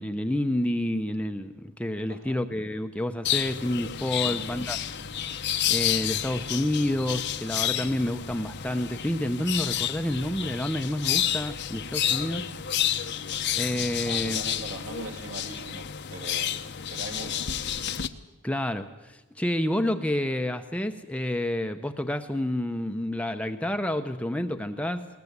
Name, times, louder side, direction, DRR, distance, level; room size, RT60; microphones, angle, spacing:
voice 1, 0.0-4.8 5.7-12.5 12.8-13.2 13.6-14.4 18.4-25.1, left 1 dB, 5° left, 7 dB, 0.7 m, -29 dB
voice 2, 2.1-2.4 4.2-4.4 14.0-17.5, right 2 dB, 60° right, 3 dB, 3.0 m, -41 dB
sound 1, 3.2-18.1, left 10 dB, 50° left, 0.9 m, -30 dB
21.0 x 19.0 x 8.1 m, 1.0 s
head